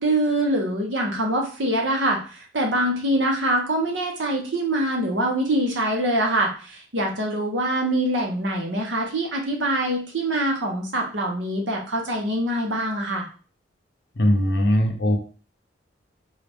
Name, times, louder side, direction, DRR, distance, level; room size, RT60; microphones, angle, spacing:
voice 1, 0.0-13.3, right 1 dB, 80° right, 1 dB, 1.0 m, -24 dB
voice 2, 14.2-15.2, equal, 60° left, 4 dB, 0.6 m, -20 dB
3.9 x 2.4 x 3.4 m, 0.38 s
head